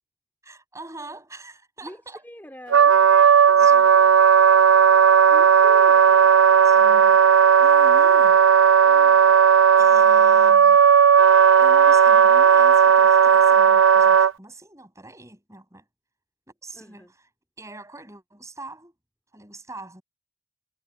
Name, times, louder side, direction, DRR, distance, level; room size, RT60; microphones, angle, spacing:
voice 1, 0.4-2.2 3.5-4.1 6.6-8.4 9.8-10.8 11.6-15.8 16.6-17.2 17.6-18.9 19.3-20.0, right 2 dB, 15° right, 7.7 m, -43 dB
voice 2, 1.8-3.0 5.3-6.3 8.8-9.4 16.7-17.1, equal, 10° left, 4.2 m, -43 dB
Wind instrument woodwind instrument, 2.7-14.3, right 7 dB, 65° right, 0.5 m, -14 dB
head